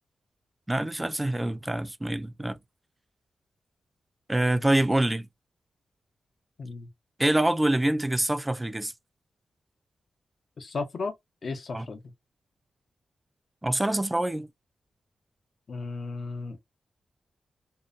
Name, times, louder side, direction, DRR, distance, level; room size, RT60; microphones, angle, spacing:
voice 1, 0.7-2.6 4.3-5.3 7.2-8.9 11.7-11.9 13.6-14.5, right 1 dB, 15° right, 0.3 m, -25 dB
voice 2, 10.6-11.1 11.4-12.0 15.7-16.6, left 3 dB, 55° left, 0.6 m, -34 dB
2.7 x 2.0 x 2.4 m
wide cardioid pair, 100°, 0 cm